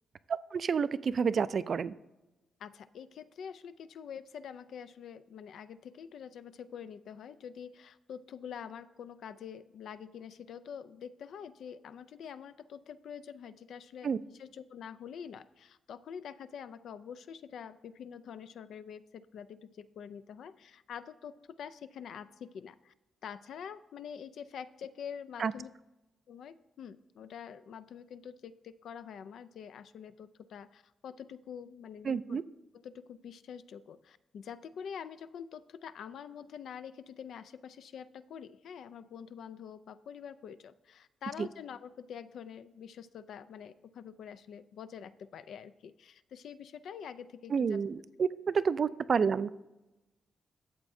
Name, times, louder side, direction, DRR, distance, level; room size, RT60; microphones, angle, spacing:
voice 1, 0.3-1.9 14.0-14.2 25.4-25.5 32.0-32.4 41.4-41.5 47.5-49.5, right 6 dB, 50° right, 16 dB, 0.3 m, -29 dB
voice 2, 2.6-14.1 14.4-22.9 23.2-25.7 26.3-32.4 32.7-47.8, left 7 dB, 75° left, 13 dB, 0.4 m, -46 dB
13.0 x 7.4 x 2.6 m, 1.0 s
cardioid pair, 110°, 0 cm